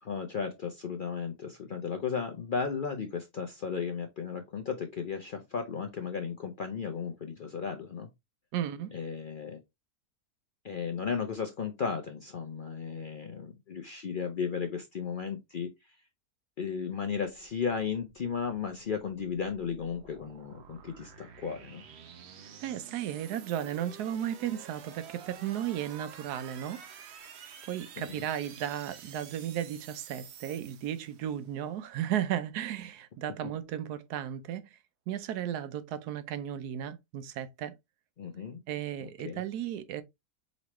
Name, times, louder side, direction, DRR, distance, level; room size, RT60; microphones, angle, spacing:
voice 1, 0.0-8.1 8.9-9.6 10.6-16.0 16.6-21.8 28.0-28.2 38.2-38.6 39.0-39.4, left 6 dB, 70° left, 0.4 m, -35 dB
voice 2, 8.5-8.9 22.6-27.0 27.7-34.8 35.1-37.8 38.7-40.0, right 10 dB, 80° right, 1.2 m, -35 dB
sound 1, 17.3-31.5, right 7 dB, 60° right, 0.7 m, -50 dB
5.2 x 3.1 x 3.0 m
omnidirectional pair, 1.7 m